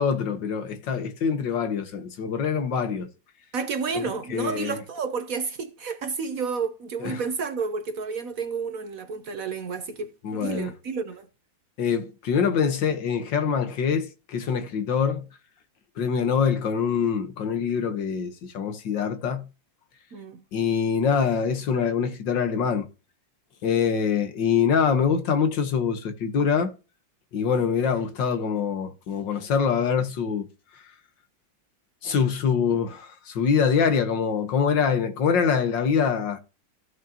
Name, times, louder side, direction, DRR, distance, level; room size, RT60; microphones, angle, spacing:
voice 1, 0.0-3.1 3.9-4.1 4.3-4.8 7.0-7.2 10.2-10.7 11.8-15.3 16.0-19.5 20.5-22.9 23.6-26.7 27.3-30.5 30.7-30.9 32.0-36.4, left 6 dB, 75° left, 1.9 m, -24 dB
voice 2, 3.5-11.3 20.1-20.4, right 5 dB, 60° right, 1.1 m, -31 dB
15.0 x 6.5 x 2.9 m
omnidirectional pair, 2.0 m